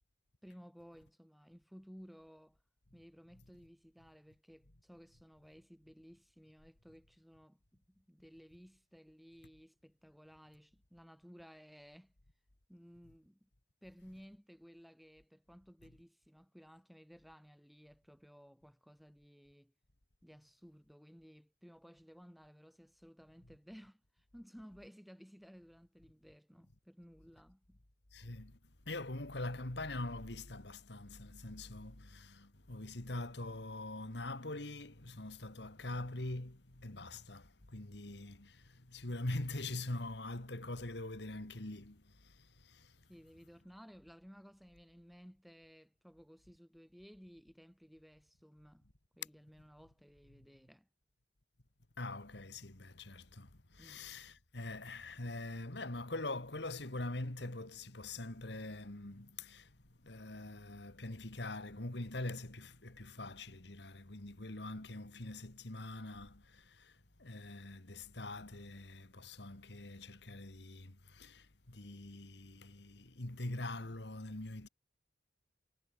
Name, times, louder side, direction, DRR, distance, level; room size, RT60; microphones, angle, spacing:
voice 1, 0.4-2.6 2.9-12.1 12.7-13.5 13.8-19.7 20.2-27.8 43.1-48.9 49.2-50.9 53.8-54.1, equal, ahead, 2.7 m, -58 dB
voice 2, 28.1-28.6 28.9-42.9 52.0-59.8 60.0-74.7, left 2 dB, 65° left, 2.1 m, -44 dB
head